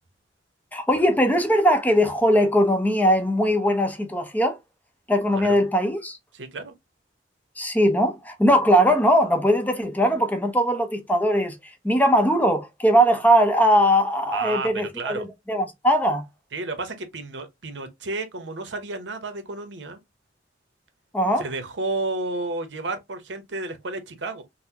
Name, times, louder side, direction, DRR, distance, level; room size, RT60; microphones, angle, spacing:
voice 1, 0.7-4.6 5.1-6.2 7.6-11.6 11.8-16.3 21.1-21.5, equal, 10° left, 0.6 m, -20 dB
voice 2, 6.3-6.7 14.3-15.3 16.5-20.0 21.4-24.4, right 3 dB, 80° right, 0.8 m, -31 dB
4.0 x 2.0 x 2.8 m
head